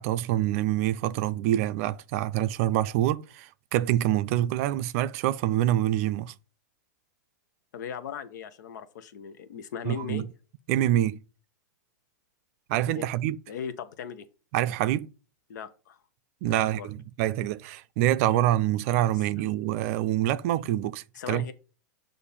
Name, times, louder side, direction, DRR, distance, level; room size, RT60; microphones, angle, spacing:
voice 1, 0.0-6.3 9.8-10.2 10.7-11.2 12.7-13.4 14.5-15.1 16.4-21.4, right 13 dB, 50° right, 0.4 m, -26 dB
voice 2, 7.7-10.3 12.9-13.1 13.5-14.3 15.5-16.0 16.4-16.9 21.1-21.5, left 7 dB, 75° left, 0.8 m, -38 dB
6.7 x 2.6 x 5.5 m
hypercardioid pair, 130°, 10 cm